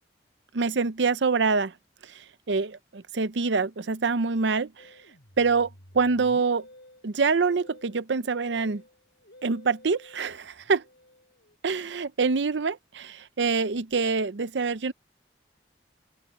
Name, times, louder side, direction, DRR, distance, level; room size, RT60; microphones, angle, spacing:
voice 1, 0.5-1.7 2.1-4.9 5.4-5.7 5.9-6.6 7.0-8.8 9.4-10.8 11.6-14.9, right 4 dB, 85° right, 0.7 m, -25 dB
Musical instrument, 4.8-11.6, left 1 dB, 65° left, 7.5 m, -52 dB
open air
head